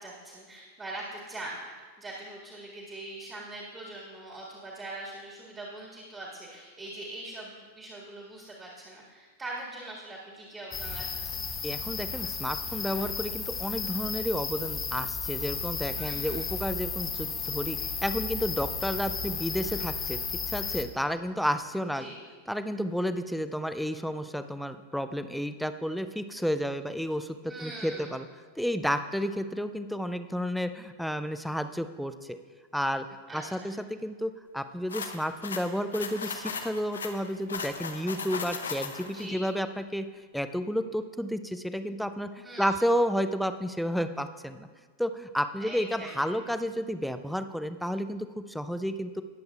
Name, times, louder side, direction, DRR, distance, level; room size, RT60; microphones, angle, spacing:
voice 1, 0.0-1.6 2.0-11.4 15.9-16.5 21.9-22.2 27.4-28.1 33.3-33.7 39.0-39.4 42.4-42.7 45.6-46.1, right 2 dB, 20° right, -3 dB, 1.9 m, -42 dB
sound 1, 10.7-20.8, left 5 dB, 25° left, 1.0 m, -34 dB
voice 2, 11.6-20.2 20.5-22.1 22.5-28.3 28.6-32.4 32.7-33.1 33.3-40.1 40.3-44.7 45.0-49.2, equal, ahead, 10 dB, 0.5 m, -31 dB
sound 2, 34.9-39.2, left 5 dB, 70° left, 0.8 m, -37 dB
20.0 x 7.8 x 2.4 m, 1.5 s
figure-of-eight pair, 90°, 0 cm